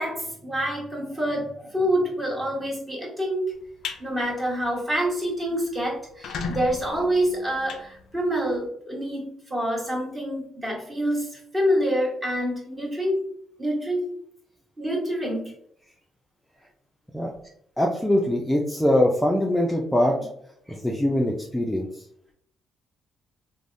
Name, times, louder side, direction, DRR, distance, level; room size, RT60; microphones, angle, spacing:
voice 1, 0.0-3.5 4.0-13.2 13.6-14.1 14.8-15.5 20.7-20.8 21.7-21.8, equal, 20° right, -4 dB, 1.3 m, -27 dB
sound 1, 3.6-4.0 4.5-4.7 5.1-5.2 5.4-5.5 6.0-8.6, left 4 dB, 75° left, 0.3 m, -35 dB
voice 2, 17.8-20.2 20.7-22.0, left 1 dB, 5° left, -1 dB, 0.4 m, -22 dB
3.2 x 2.0 x 2.5 m, 0.69 s
cardioid pair, 90°, 0 cm